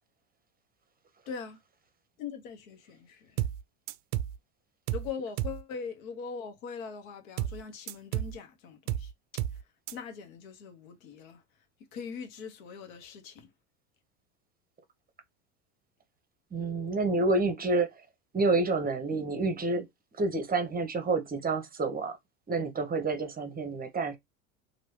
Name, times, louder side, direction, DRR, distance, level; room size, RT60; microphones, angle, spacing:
voice 1, 1.3-1.6 2.2-3.4 4.9-9.6 9.9-11.4 11.9-13.5, left 6 dB, 70° left, 1.3 m, -41 dB
sound 1, 3.4-3.6 3.9-4.4 4.9-5.1 5.4-5.6 7.4-7.6 7.9-8.4 8.9-9.1 9.4-9.6 9.9-10.0, right 12 dB, 50° right, 0.5 m, -32 dB
voice 2, 16.5-17.9 18.3-19.9 20.2-22.1 22.5-24.2, right 3 dB, 20° right, 0.9 m, -28 dB
3.0 x 2.8 x 3.2 m
hypercardioid pair, 90°, 42 cm